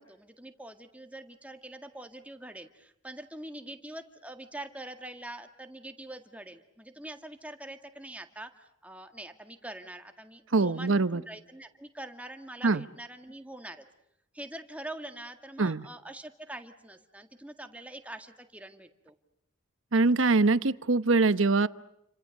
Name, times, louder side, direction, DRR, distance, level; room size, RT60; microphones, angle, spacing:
voice 1, 0.0-13.9 14.3-19.1, right 1 dB, 5° right, 6 dB, 1.9 m, -44 dB
voice 2, 10.5-11.2 12.6-12.8 15.6-15.9 19.9-21.7, right 3 dB, 70° right, 15 dB, 0.9 m, -23 dB
30.0 x 25.5 x 6.6 m, 0.82 s
head